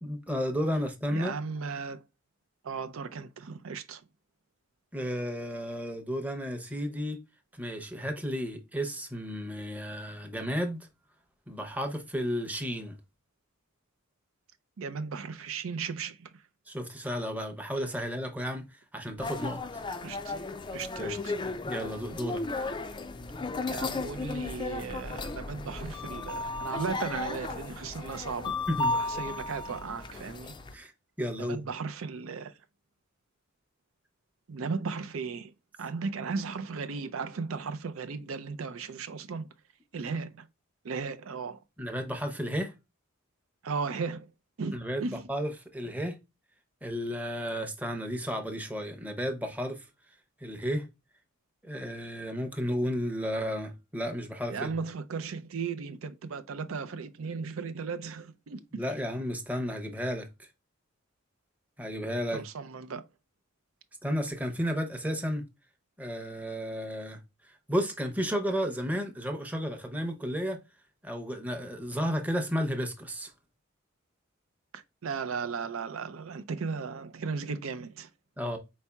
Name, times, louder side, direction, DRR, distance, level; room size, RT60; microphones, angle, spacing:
voice 1, 0.0-1.3 4.9-7.2 7.5-10.9 11.5-12.9 16.7-19.6 21.0-21.2 21.6-22.4 28.7-28.9 30.7-30.9 31.2-31.6 40.0-40.2 41.8-42.7 44.7-46.2 46.8-49.9 50.4-50.9 51.6-54.7 58.7-60.3 61.8-62.4 64.0-65.5 66.0-67.2 67.7-70.6 71.0-73.3 78.4-78.6, equal, 10° right, 0.7 m, -33 dB
voice 2, 1.1-2.0 2.6-4.0 14.8-16.4 20.0-20.3 20.7-21.3 23.7-28.6 28.9-30.5 31.4-32.6 34.5-35.5 35.8-39.5 39.9-40.5 40.8-41.6 43.6-44.3 44.6-45.3 54.5-58.6 62.3-63.0 74.7-78.1, right 5 dB, 85° right, 0.5 m, -36 dB
sound 1, 19.2-30.7, left 3 dB, 25° left, 0.4 m, -35 dB
4.5 x 4.2 x 2.2 m
head